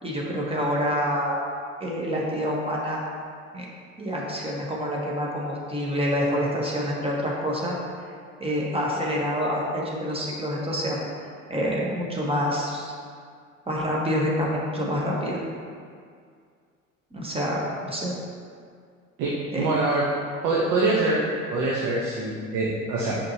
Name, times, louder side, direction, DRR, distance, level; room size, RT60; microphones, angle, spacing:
voice 1, 0.0-1.4 1.8-3.0 3.5-3.6 4.0-7.8 8.4-11.0 11.5-12.9 13.7-15.4 17.1-18.1 19.5-19.7, equal, 15° right, -3 dB, 1.3 m, -27 dB
voice 2, 19.2-20.0 20.4-21.2 21.5-23.1, right 2 dB, 50° right, -4 dB, 1.0 m, -24 dB
6.7 x 5.3 x 2.8 m, 2.2 s
figure-of-eight pair, 65°, 40 cm